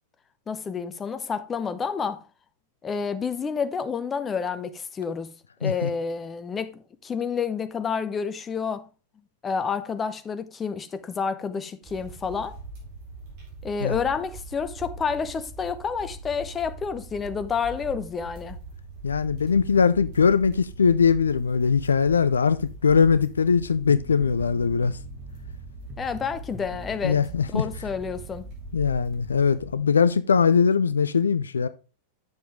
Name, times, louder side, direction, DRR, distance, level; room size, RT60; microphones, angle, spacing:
voice 1, 0.5-2.2 2.8-8.9 9.4-12.6 13.6-18.6 26.0-27.2 27.5-28.5, left 6 dB, 20° left, 0.7 m, -29 dB
sound 1, 11.8-30.2, right 2 dB, 45° right, 3.9 m, -42 dB
voice 2, 19.0-25.0 27.0-27.6 28.7-31.7, left 6 dB, 70° left, 0.3 m, -21 dB
sound 2, 23.9-29.2, right 3 dB, 15° right, 1.5 m, -44 dB
8.0 x 6.9 x 3.4 m
figure-of-eight pair, 90°, 0 cm